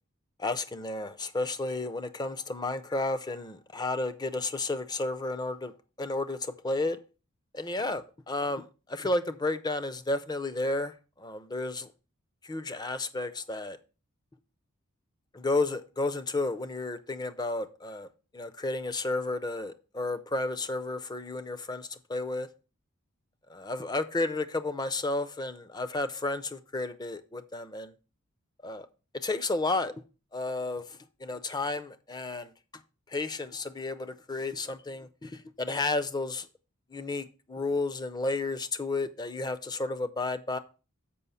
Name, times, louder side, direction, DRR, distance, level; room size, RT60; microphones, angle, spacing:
voice 1, 0.4-5.7 6.0-7.0 7.5-11.9 12.4-13.8 15.3-18.1 18.3-22.5 23.5-27.9 28.6-28.9 29.1-29.9 30.3-32.5 33.1-36.5 36.9-40.6, left 2 dB, 20° left, 0.5 m, -32 dB
6.9 x 5.4 x 5.4 m
head